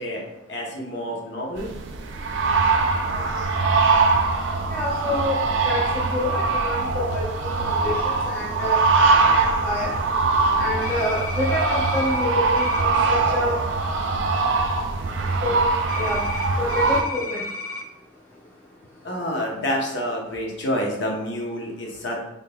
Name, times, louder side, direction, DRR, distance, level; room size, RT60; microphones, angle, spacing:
voice 1, 0.0-1.7 19.0-22.2, equal, 55° left, -1 dB, 0.8 m, -28 dB
sound 1, 1.6-17.0, right 3 dB, 60° right, 0.4 m, -22 dB
voice 2, 4.7-5.3 5.6-5.8 6.1-8.8 9.4-9.9 10.6-13.6 15.4-15.6 15.9-16.2 16.6-17.4, left 1 dB, 10° left, -6 dB, 0.6 m, -27 dB
sound 2, 10.8-12.3 12.6-12.8 15.9-17.8, left 3 dB, 80° left, 0.5 m, -33 dB
3.8 x 3.7 x 2.2 m, 0.89 s
head